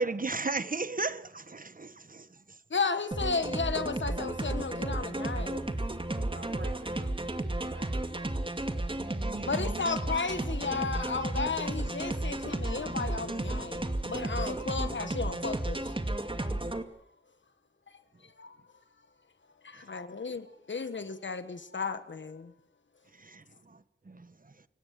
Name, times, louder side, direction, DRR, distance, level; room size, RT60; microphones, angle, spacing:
voice 1, 0.0-2.6 9.0-9.9 19.7-19.8 23.1-24.6, right 3 dB, 45° right, 1.4 m, -36 dB
voice 2, 2.7-5.8 9.4-15.9 16.7-16.8 18.2-18.6 19.6-22.5, left 4 dB, 75° left, 1.5 m, -34 dB
sound 1, 3.1-16.8, right 1 dB, 25° right, 2.3 m, -33 dB
voice 3, 6.1-8.6, right 3 dB, 80° right, 5.0 m, -50 dB
29.5 x 18.0 x 7.6 m
wide cardioid pair, 65°, 19 cm